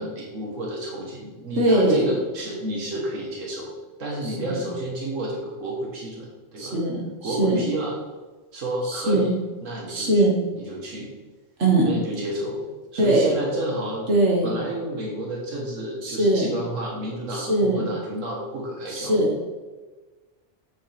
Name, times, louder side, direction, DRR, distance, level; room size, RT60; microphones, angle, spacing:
voice 1, 0.0-3.7 4.0-6.8 7.2-7.9 8.5-9.3 9.6-10.2 10.6-11.1 11.8-12.6 12.9-14.1 14.4-19.1, right 1 dB, 85° right, -2 dB, 1.7 m, -30 dB
voice 2, 1.6-2.2 4.2-4.6 6.6-7.6 8.8-9.3 9.9-10.3 11.6-11.9 13.0-13.3 14.1-14.5 16.0-16.5 17.3-17.9 18.9-19.5, right 1 dB, 65° right, -2 dB, 2.0 m, -21 dB
8.4 x 7.4 x 3.4 m, 1.2 s
omnidirectional pair, 1.3 m